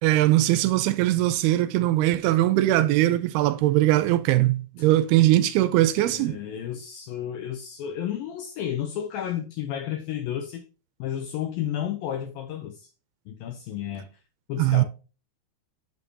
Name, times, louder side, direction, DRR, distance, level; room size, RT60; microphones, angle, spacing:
voice 1, 0.0-6.4 14.6-14.8, right 15 dB, 85° right, 2.4 m, -21 dB
voice 2, 6.1-10.6 11.0-12.9 13.3-14.1 14.5-14.8, left 10 dB, 75° left, 2.3 m, -32 dB
8.1 x 6.6 x 2.8 m
omnidirectional pair, 4.6 m